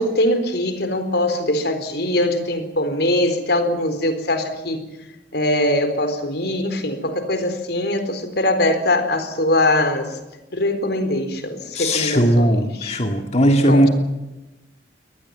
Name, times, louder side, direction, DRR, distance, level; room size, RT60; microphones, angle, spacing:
voice 1, 0.0-4.8 5.3-10.2 10.5-13.0 13.7-13.9, left 1 dB, 65° left, 9 dB, 4.1 m, -22 dB
voice 2, 11.7-13.9, equal, 40° left, 4 dB, 2.0 m, -17 dB
23.5 x 19.5 x 8.9 m, 1.0 s
head